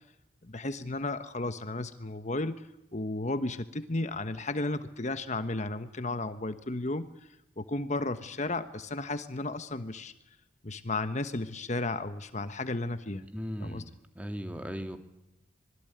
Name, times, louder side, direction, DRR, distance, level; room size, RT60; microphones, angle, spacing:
voice 1, 0.4-7.3 7.6-10.1 10.6-13.2 13.6-13.8, left 2 dB, 40° left, 10 dB, 1.3 m, -34 dB
voice 2, 13.1-13.9 14.2-15.0, equal, 10° right, 7 dB, 2.1 m, -37 dB
26.5 x 21.0 x 9.3 m, 0.93 s
head